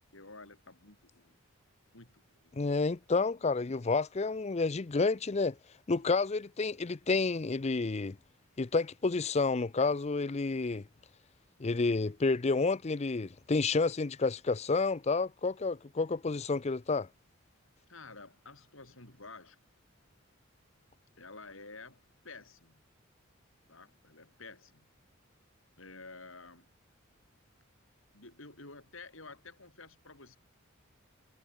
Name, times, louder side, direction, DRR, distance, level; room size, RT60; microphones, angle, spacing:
voice 1, 0.1-1.4 1.9-2.5 17.9-19.6 21.2-22.8 23.7-24.8 25.8-26.7 28.1-30.4, left 3 dB, 70° left, 6.6 m, -51 dB
voice 2, 2.5-5.6 5.9-8.2 8.6-10.8 11.6-17.1, left 3 dB, 30° left, 0.5 m, -30 dB
head